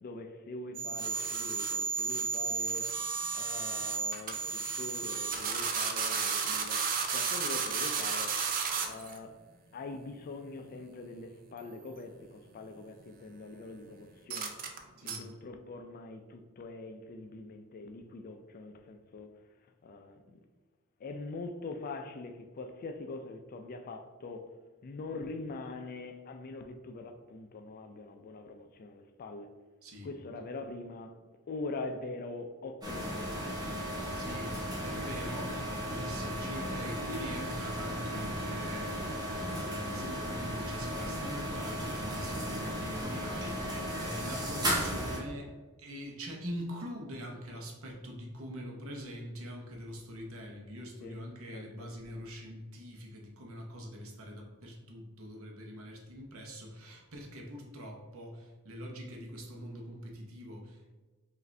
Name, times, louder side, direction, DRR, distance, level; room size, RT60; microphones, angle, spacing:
voice 1, 0.0-3.0 3.3-4.4 4.8-6.8 7.1-8.4 8.9-9.4 9.7-14.5 15.0-19.4 19.8-20.4 21.0-24.5 24.8-29.5 30.0-31.2 31.5-33.5 51.0-51.2 51.5-51.9, left 3 dB, 40° left, 0.3 m, -43 dB
sound 1, 0.7-9.2 11.6-12.0 14.3-14.8 15.1-15.2, right 5 dB, 40° right, 0.5 m, -33 dB
voice 2, 15.0-15.3 29.8-30.1 34.1-45.5 45.8-60.9, equal, 65° right, 0.8 m, -43 dB
sound 2, 32.8-45.2, equal, 20° right, 1.0 m, -35 dB
4.9 x 2.6 x 3.2 m
head